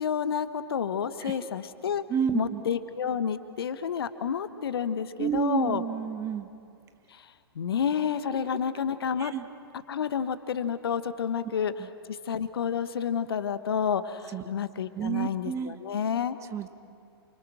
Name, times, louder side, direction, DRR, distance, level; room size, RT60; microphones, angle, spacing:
voice 1, 0.0-2.0 2.3-5.8 7.1-9.3 9.9-16.4, left 7 dB, 65° left, 12 dB, 1.3 m, -30 dB
voice 2, 2.1-2.6 5.2-6.5 9.2-9.4 14.3-14.4 14.9-15.7 16.5-16.7, right 8 dB, 20° right, 10 dB, 1.3 m, -30 dB
28.5 x 25.5 x 6.3 m, 2.4 s
figure-of-eight pair, 115°, 13 cm